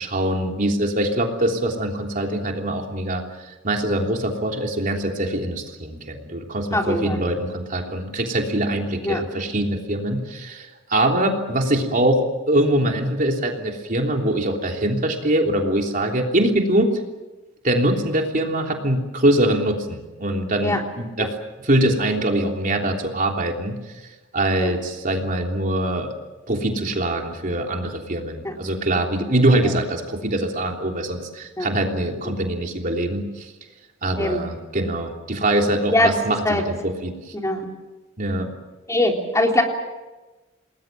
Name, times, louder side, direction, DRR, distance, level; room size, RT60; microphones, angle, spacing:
voice 1, 0.0-3.2 3.6-16.9 17.6-21.3 21.6-23.8 24.3-26.1 26.5-33.5 34.0-37.1 38.2-38.5, right 1 dB, 45° right, 2 dB, 3.3 m, -23 dB
voice 2, 6.7-7.2 9.0-9.2 20.6-20.8 21.2-21.3 24.6-24.7 28.4-28.5 31.6-31.7 34.2-34.4 35.9-36.1 36.4-36.6 37.4-37.7 38.9-39.6, left 1 dB, 15° left, 1 dB, 3.5 m, -21 dB
29.5 x 20.5 x 7.5 m, 1.1 s
head